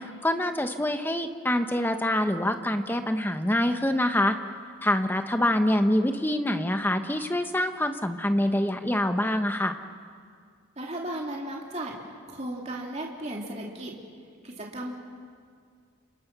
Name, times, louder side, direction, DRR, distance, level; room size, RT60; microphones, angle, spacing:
voice 1, 0.0-4.4 4.8-9.8, left 1 dB, 10° left, 7 dB, 1.1 m, -25 dB
voice 2, 10.8-11.9 12.3-13.9 14.4-15.0, right 1 dB, 30° right, -2 dB, 3.2 m, -35 dB
30.0 x 28.0 x 6.2 m, 2.1 s
head